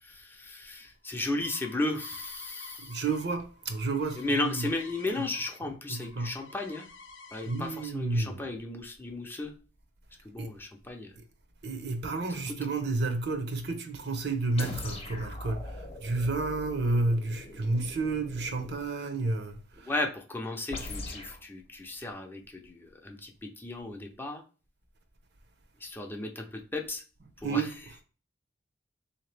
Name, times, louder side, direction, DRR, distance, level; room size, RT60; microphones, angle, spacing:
voice 1, 0.0-3.0 4.2-6.9 7.3-9.5 10.2-11.1 12.3-12.4 19.8-24.4 25.8-27.0 27.4-27.7, left 2 dB, 10° left, 0.5 m, -35 dB
sound 1, 0.8-5.6 5.9-7.9, left 3 dB, 75° left, 0.6 m, -51 dB
voice 2, 2.8-4.7 5.6-6.4 7.5-8.4 10.4-10.5 11.6-20.1 27.2-28.0, right 3 dB, 60° right, 0.7 m, -31 dB
sound 2, 14.6-18.9 20.7-21.4, left 2 dB, 35° left, 0.8 m, -41 dB
3.7 x 2.8 x 3.2 m
head